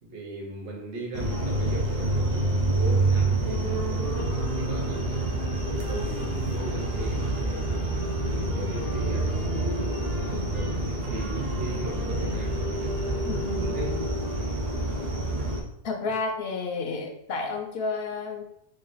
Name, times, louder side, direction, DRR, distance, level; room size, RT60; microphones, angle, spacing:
voice 1, 0.0-5.3 5.6-7.9 8.3-9.4 10.2-14.6, right 2 dB, 80° right, -1 dB, 1.2 m, -38 dB
sound 1, 1.1-15.6, right 2 dB, 60° right, 1.0 m, -27 dB
voice 2, 13.3-13.8 15.8-18.4, left 4 dB, 65° left, 4 dB, 0.8 m, -31 dB
3.5 x 2.4 x 3.8 m, 0.74 s
omnidirectional pair, 1.1 m